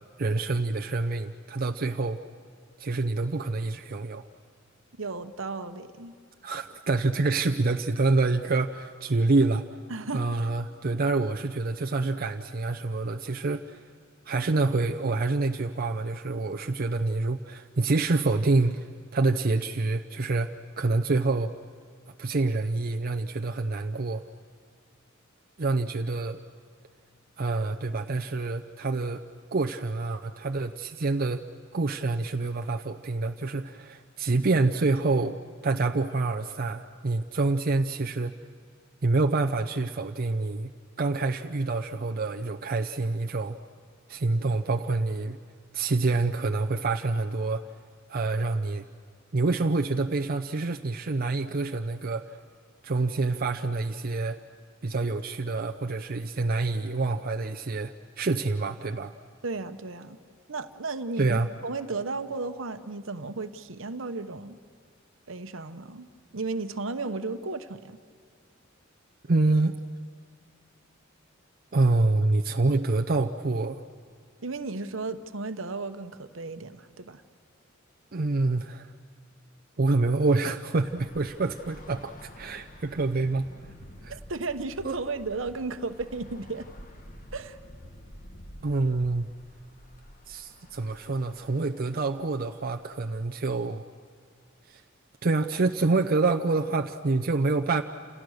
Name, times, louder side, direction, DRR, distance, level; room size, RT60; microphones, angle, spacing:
voice 1, 0.2-2.2 2.8-4.3 6.4-9.7 10.1-13.8 14.3-20.5 20.8-21.5 22.2-24.2 25.6-26.4 27.4-29.2 29.5-31.4 31.7-38.3 39.0-40.7 41.0-43.6 44.1-45.4 45.7-47.6 48.1-48.8 49.3-52.4 52.8-54.4 54.8-59.1 61.2-61.5 69.3-69.8 71.7-73.8 78.1-78.9 79.8-83.7 84.0-84.1 84.8-85.0 88.6-89.3 90.3-93.8 94.7-94.8 95.2-97.8, right 3 dB, 45° right, 4 dB, 0.7 m, -27 dB
voice 2, 5.0-6.1 9.9-10.5 59.4-60.2 60.5-64.6 65.3-68.0 74.4-77.2 84.1-86.7 87.3-87.6, right 3 dB, 70° right, 9 dB, 1.1 m, -34 dB
Bus / Traffic noise roadway noise, 80.7-93.2, equal, 45° left, 1.9 m, -49 dB
29.0 x 27.5 x 6.5 m, 2.1 s
head